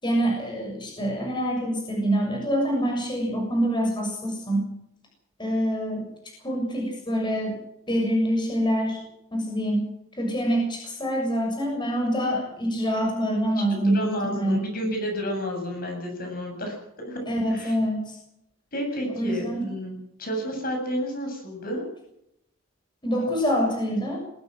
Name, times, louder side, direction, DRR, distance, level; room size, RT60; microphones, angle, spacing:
voice 1, 0.0-4.7 5.4-6.0 6.4-7.6 7.9-9.0 9.3-9.8 10.2-14.6 17.3-18.2 19.2-19.6 23.0-24.2, equal, 25° left, 0 dB, 7.0 m, -25 dB
voice 2, 13.9-17.2 17.5-17.7 18.7-21.8, equal, 45° left, 3 dB, 7.8 m, -31 dB
21.5 x 16.0 x 7.9 m, 0.78 s
head